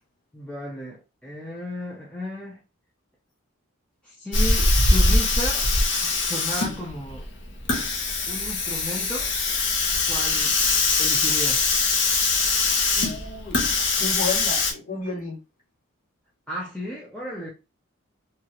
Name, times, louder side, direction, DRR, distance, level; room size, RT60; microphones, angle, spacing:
voice 1, 0.3-2.6 4.0-5.7 6.0-7.3 7.8-7.9 8.3-9.3 10.1-10.6 11.0-11.7 16.5-17.5, left 1 dB, 5° left, 0.5 m, -34 dB
Hiss, 4.3-14.7, left 3 dB, 60° left, 0.7 m, -22 dB
voice 2, 12.9-15.4, left 3 dB, 40° left, 1.6 m, -32 dB
2.8 x 2.4 x 2.8 m
head